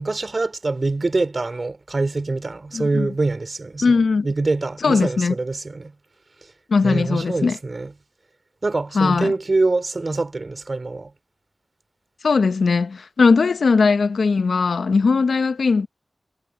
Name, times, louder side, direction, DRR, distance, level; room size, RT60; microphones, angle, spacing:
voice 1, 0.0-4.0 4.2-5.9 6.8-7.9 8.6-11.1, right 3 dB, 50° right, 3.6 m, -24 dB
voice 2, 2.7-3.1 3.8-4.3 4.8-5.3 6.7-7.6 8.9-9.3 12.2-15.9, left 4 dB, 85° left, 0.7 m, -19 dB
wide cardioid pair, 55°, 0 cm